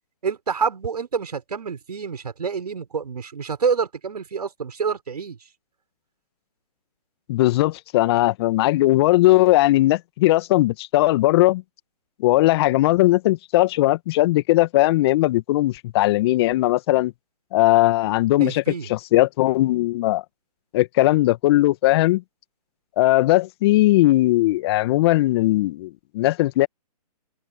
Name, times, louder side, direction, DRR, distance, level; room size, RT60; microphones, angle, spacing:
voice 1, 0.2-5.4 18.4-18.9, right 6 dB, 70° right, 6.6 m, -27 dB
voice 2, 7.3-11.6 12.2-17.1 17.5-18.6 18.9-20.2 20.7-22.2 23.0-26.7, left 17 dB, 40° left, 1.8 m, -18 dB
open air
hypercardioid pair, 135°, 21 cm